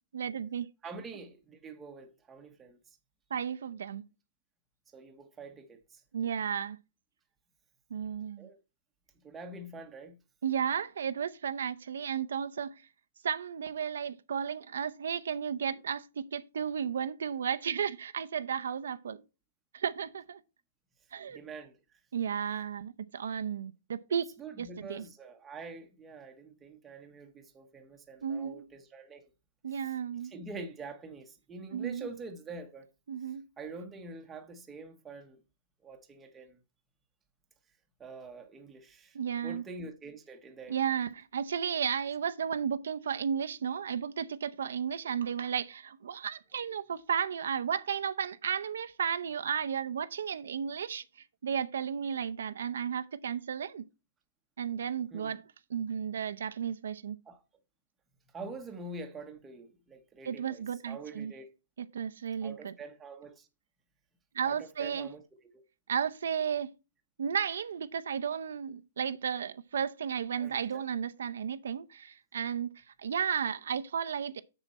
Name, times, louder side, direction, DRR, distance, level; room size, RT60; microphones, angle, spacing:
voice 1, 0.1-0.7 3.3-4.0 6.1-6.8 7.9-8.5 10.4-12.8 13.2-19.2 19.7-20.4 21.1-21.4 22.1-25.0 28.2-28.6 29.6-30.3 31.7-32.1 33.1-33.4 39.1-39.6 40.7-51.0 51.4-53.8 54.6-55.4 55.7-57.2 60.2-61.3 61.8-62.7 64.3-65.1 65.9-66.7 67.2-74.4, right 7 dB, 80° right, 0.7 m, -33 dB
voice 2, 0.8-3.0 4.9-6.0 8.4-8.6 9.2-10.2 21.3-22.0 24.4-29.3 29.7-29.9 30.2-32.9 33.6-35.4 35.8-36.6 38.0-39.2 39.4-40.8 45.0-45.1 55.1-55.3 57.2-57.4 58.3-61.5 62.4-63.5 64.4-65.2 65.5-65.6 70.4-70.8, right 3 dB, 10° right, 1.0 m, -46 dB
7.3 x 6.9 x 4.2 m
hypercardioid pair, 165°, 0 cm